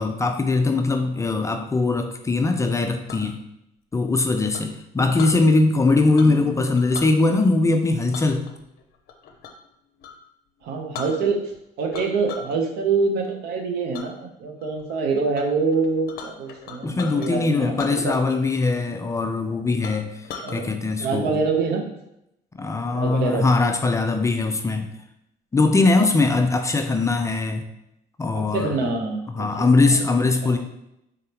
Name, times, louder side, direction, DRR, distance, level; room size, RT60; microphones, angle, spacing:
voice 1, 0.0-3.4 3.9-8.4 16.8-20.1 20.5-21.4 22.6-24.9 25.5-27.6 28.2-28.8 29.4-30.6, left 3 dB, 20° left, 5 dB, 0.4 m, -21 dB
Chink clink, 2.8-3.3 4.5-5.4 6.1-6.5 6.8-7.1 8.1-9.7 10.0-10.2 10.6-10.7 10.9-11.6 11.9-12.6 12.9-13.3 13.9-14.1 14.6-15.0 15.3-15.4 15.7-17.3 17.7-18.5 18.8-18.9 19.4-19.5 19.8-20.6, left 6 dB, 65° left, 0.6 m, -39 dB
voice 2, 10.6-11.5 11.8-17.6 17.9-18.1 20.4-20.7 21.0-21.8 22.9-23.4 28.3-29.9 30.4-30.6, right 4 dB, 75° right, 3 dB, 0.8 m, -25 dB
3.8 x 3.5 x 2.9 m, 0.81 s
cardioid pair, 110°, 17 cm